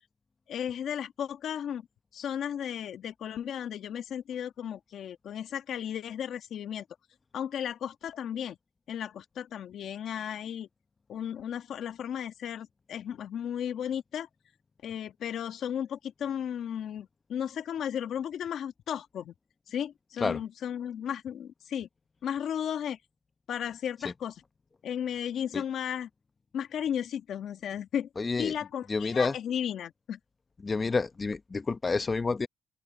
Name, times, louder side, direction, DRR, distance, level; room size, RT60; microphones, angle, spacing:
voice 1, 0.5-1.8 2.1-6.8 7.3-8.6 8.9-10.7 11.1-14.3 14.8-19.3 19.7-21.9 22.2-23.0 23.5-24.4 24.8-26.1 26.5-28.1 28.4-30.2, left 9 dB, 70° left, 1.4 m, -34 dB
voice 2, 28.2-28.5 28.9-29.3 30.6-32.5, left 4 dB, 30° left, 0.9 m, -29 dB
open air
cardioid pair, 90°, 0 cm